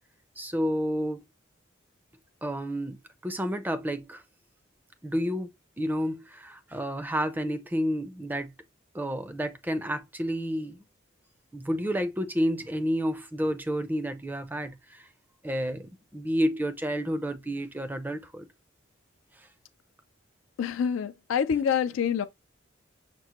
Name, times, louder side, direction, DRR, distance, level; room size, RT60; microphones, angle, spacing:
voice 1, 0.4-1.2 2.4-3.0 3.2-4.2 5.0-5.5 5.8-8.5 8.9-10.8 11.5-15.1 15.4-18.5 19.4-19.5, equal, 10° right, 0.4 m, -30 dB
voice 2, 20.6-22.2, left 7 dB, 90° left, 0.3 m, -26 dB
6.1 x 2.1 x 2.9 m
head